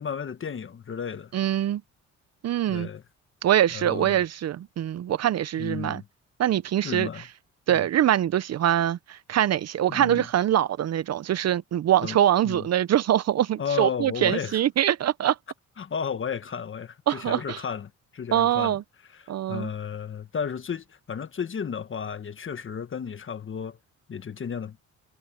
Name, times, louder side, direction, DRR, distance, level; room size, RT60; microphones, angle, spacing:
voice 1, 0.0-1.3 2.7-3.0 3.7-4.2 5.6-6.0 6.8-7.3 7.7-7.9 9.9-10.3 12.0-12.2 12.4-12.7 13.6-14.6 15.8-18.8 19.1-23.8 24.1-24.8, left 7 dB, 40° left, 1.5 m, -33 dB
voice 2, 1.3-1.8 2.4-2.9 3.4-6.0 6.4-7.1 7.7-15.4 17.1-17.6 18.3-18.8 19.3-19.7, right 11 dB, 55° right, 0.7 m, -23 dB
cardioid pair, 90°, 30 cm